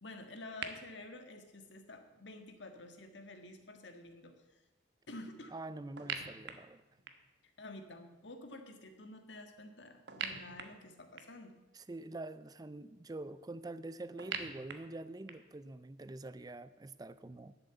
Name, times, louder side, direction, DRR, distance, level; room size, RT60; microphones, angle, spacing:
voice 1, 0.0-4.3 5.1-5.5 7.6-11.5, left 2 dB, 70° left, 6 dB, 1.6 m, -50 dB
sound 1, 0.6-0.7 6.0-7.4 10.1-11.5 14.2-15.6, right 6 dB, 65° right, 1.2 m, -43 dB
voice 2, 5.5-6.8 11.7-17.5, right 2 dB, 20° right, 15 dB, 0.4 m, -45 dB
11.5 x 7.4 x 8.0 m, 1.1 s
head